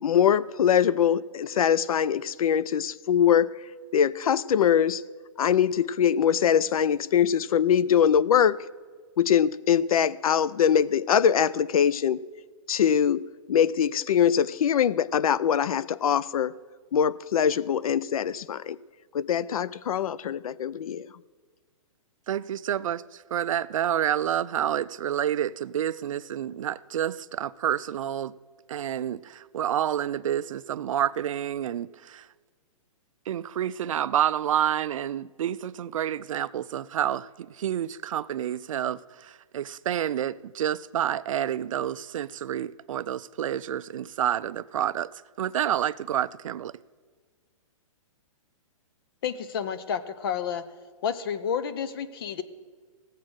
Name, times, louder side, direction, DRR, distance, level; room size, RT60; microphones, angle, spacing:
voice 1, 0.0-3.5 3.9-5.0 5.4-8.6 9.2-12.2 12.7-16.5 16.9-18.8 19.1-21.1, left 8 dB, 90° left, 0.5 m, -23 dB
voice 2, 22.3-23.0 23.3-28.3 28.7-32.2 33.3-37.3 37.6-39.0 39.5-45.1 45.4-46.7, right 10 dB, 65° right, 0.4 m, -28 dB
voice 3, 49.2-50.6 51.0-52.4, left 7 dB, 40° left, 0.7 m, -30 dB
17.0 x 7.4 x 6.3 m
hypercardioid pair, 165°, 18 cm